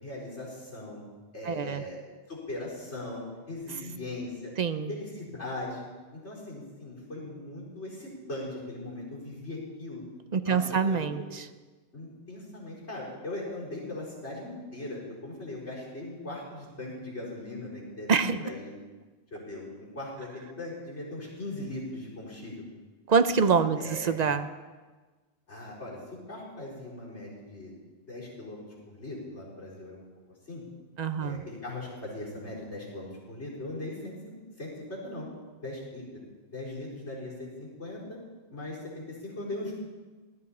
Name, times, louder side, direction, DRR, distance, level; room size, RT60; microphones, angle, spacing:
voice 1, 0.0-1.0 1.3-2.0 2.3-4.5 4.9-5.8 6.1-10.0 10.4-11.2 11.9-18.1 18.4-18.7 19.3-22.6 23.8-24.2 25.5-26.0 26.3-27.7 28.1-28.6 28.9-30.0 30.4-30.6 31.2-35.3 35.6-36.2 36.5-38.2 38.5-39.7, left 2 dB, 75° left, -6 dB, 4.7 m, -39 dB
voice 2, 1.4-1.8 4.6-5.0 10.3-11.4 18.1-18.5 23.1-24.5 31.0-31.4, right 5 dB, 45° right, 11 dB, 0.7 m, -25 dB
19.0 x 12.5 x 4.3 m, 1.3 s
omnidirectional pair, 1.2 m